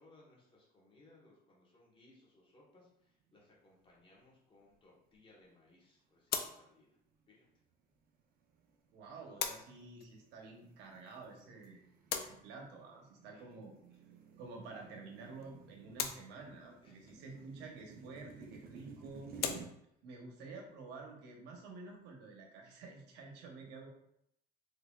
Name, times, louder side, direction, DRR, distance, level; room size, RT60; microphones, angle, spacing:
voice 1, 0.0-7.0 7.3-7.5 13.3-13.5 16.8-17.0, left 2 dB, 30° left, -4 dB, 1.3 m, -65 dB
sound 1, 3.2-3.7 4.1-4.2 4.9-5.4 5.9-6.2 6.8-19.7, right 5 dB, 60° right, 0.6 m, -56 dB
sound 2, 3.8-23.1, left 8 dB, 70° left, 0.4 m, -47 dB
voice 2, 8.9-11.8 12.1-13.7 14.4-19.3 20.0-23.9, right 3 dB, 90° right, 1 dB, 0.9 m, -50 dB
3.9 x 3.2 x 2.3 m, 0.75 s
cardioid pair, 110°, 17 cm